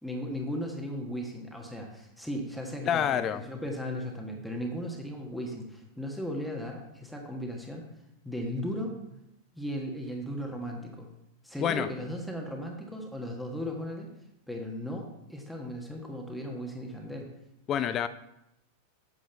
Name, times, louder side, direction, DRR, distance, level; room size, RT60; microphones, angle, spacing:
voice 1, 0.0-7.9 8.2-9.0 9.5-11.1 11.4-14.1 14.5-17.3, equal, ahead, 0 dB, 1.4 m, -36 dB
voice 2, 2.9-3.4 11.6-11.9 17.7-18.1, left 9 dB, 30° left, 12 dB, 0.4 m, -27 dB
8.5 x 7.3 x 4.5 m, 0.84 s
figure-of-eight pair, 90°, 0 cm